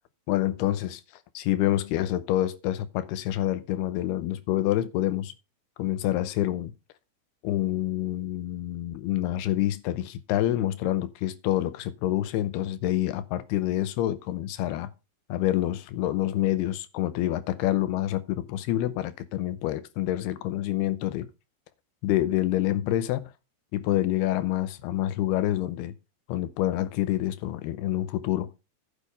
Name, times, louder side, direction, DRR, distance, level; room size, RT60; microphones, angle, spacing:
voice 1, 0.3-1.0 1.3-5.3 5.8-6.7 7.4-14.9 15.3-21.3 22.0-23.3 23.7-25.9 26.3-28.6, left 13 dB, 75° left, 2.6 m, -27 dB
10.5 x 6.6 x 5.2 m
omnidirectional pair, 5.0 m